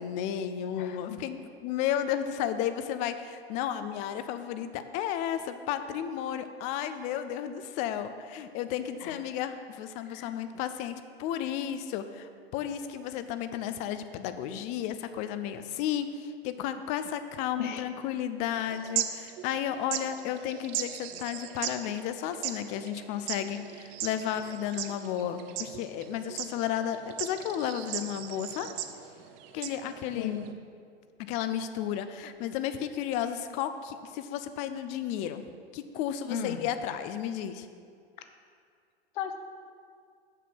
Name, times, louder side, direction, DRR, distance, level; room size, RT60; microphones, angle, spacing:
voice 1, 0.0-28.8 29.5-30.4 31.2-35.5 35.7-37.7, left 10 dB, 25° left, 10 dB, 0.3 m, -33 dB
sound 1, 18.5-30.5, right 11 dB, 35° right, 0.6 m, -38 dB
voice 2, 30.1-30.5 36.3-36.7 38.2-38.3 39.1-39.4, left 7 dB, 50° left, 8 dB, 0.8 m, -36 dB
7.4 x 6.6 x 6.0 m, 2.2 s
hypercardioid pair, 105°, 33 cm